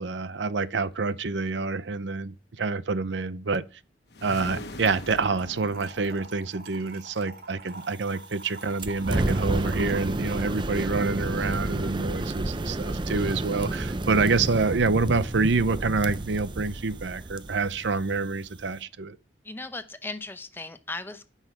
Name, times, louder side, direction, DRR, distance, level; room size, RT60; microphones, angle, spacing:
voice 1, 0.0-3.6 4.2-19.2, right 3 dB, 85° right, 0.7 m, -27 dB
sound 1, 4.1-6.7, left 1 dB, 65° left, 1.2 m, -42 dB
Trickle dribble / Fill (with liquid), 4.8-11.9, right 3 dB, 55° right, 4.4 m, -47 dB
sound 2, 8.8-18.8, right 2 dB, 25° right, 0.6 m, -31 dB
voice 2, 19.4-21.3, left 2 dB, 10° left, 0.7 m, -37 dB
14.5 x 5.8 x 5.9 m
head